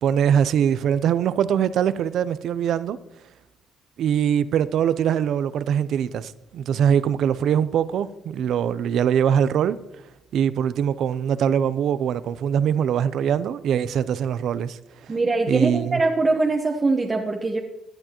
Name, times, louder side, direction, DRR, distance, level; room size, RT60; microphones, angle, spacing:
voice 1, 0.0-3.0 4.0-9.8 10.3-14.8 15.1-15.2 15.5-16.0, right 8 dB, 75° right, 0.5 m, -22 dB
voice 2, 15.1-17.6, right 3 dB, 30° right, 1.1 m, -22 dB
17.0 x 11.0 x 3.0 m
cardioid pair, 90°, 0 cm